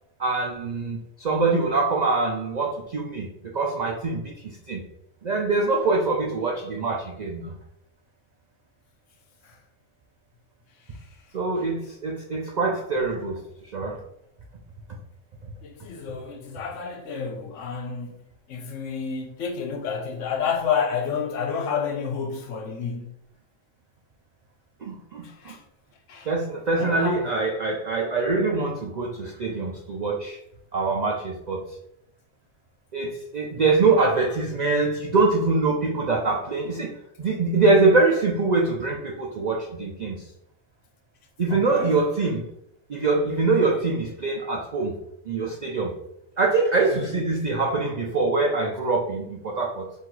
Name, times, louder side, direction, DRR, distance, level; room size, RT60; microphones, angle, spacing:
voice 1, 0.2-3.3 3.5-4.8 5.2-7.5 11.3-13.4 13.7-14.0 24.8-25.5 26.3-30.4 30.7-31.6 32.9-40.3 41.4-42.5 42.9-44.9 45.3-45.9 46.4-49.9, right 3 dB, 85° right, 0.3 m, -24 dB
voice 2, 15.6-18.1 18.5-23.1 25.4-25.6 26.1-26.3 26.8-27.2 41.5-41.9, left 6 dB, 65° left, 1.0 m, -29 dB
4.5 x 2.7 x 3.9 m
omnidirectional pair, 1.5 m